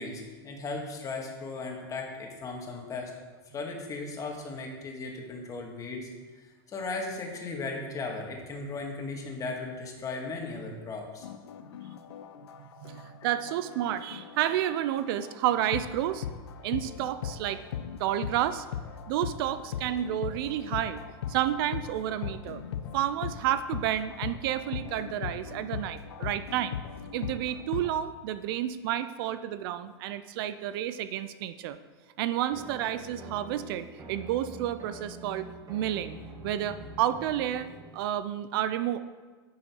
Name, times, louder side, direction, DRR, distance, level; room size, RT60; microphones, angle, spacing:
voice 1, 0.0-3.1 3.5-6.1 6.7-11.3 13.2-13.4, left 3 dB, 25° left, 1 dB, 1.8 m, -37 dB
sound 1, 11.2-28.0, left 8 dB, 85° left, 0.7 m, -39 dB
voice 2, 12.6-16.3 16.6-17.6 18.0-18.7 19.1-21.0 21.3-22.6 22.9-26.8 27.1-31.8 32.2-36.2 36.4-39.0, right 12 dB, 60° right, 12 dB, 0.5 m, -30 dB
sound 2, 32.5-38.1, right 2 dB, 25° right, 1.7 m, -46 dB
10.5 x 6.2 x 4.5 m, 1.4 s
supercardioid pair, 125°, 13 cm